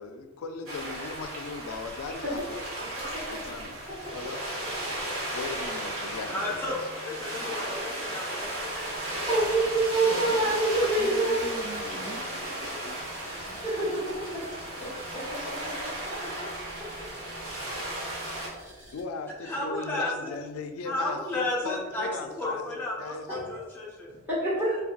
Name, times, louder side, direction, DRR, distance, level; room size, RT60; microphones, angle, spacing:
voice 1, 0.0-2.6 3.3-3.8 4.1-4.4 5.3-6.8 7.9-8.0 18.9-22.6 23.0-23.3, left 4 dB, 85° left, 7 dB, 0.3 m, -38 dB
sound 1, 0.7-18.5, right 1 dB, 85° right, 0.9 m, -35 dB
voice 2, 6.3-9.3 19.4-20.4 20.9-22.1 22.4-24.1 24.6-24.8, left 2 dB, 10° left, -5 dB, 0.6 m, -33 dB
sound 2, 8.4-19.0, right 1 dB, 55° right, 1.3 m, -49 dB
voice 3, 8.8-11.4 13.6-13.9 19.4-19.5 23.3-23.7 24.3-24.7, right 2 dB, 10° right, -10 dB, 1.0 m, -26 dB
voice 4, 10.0-13.1, right 1 dB, 40° right, -3 dB, 0.7 m, -43 dB
3.9 x 2.2 x 2.5 m, 1.3 s
head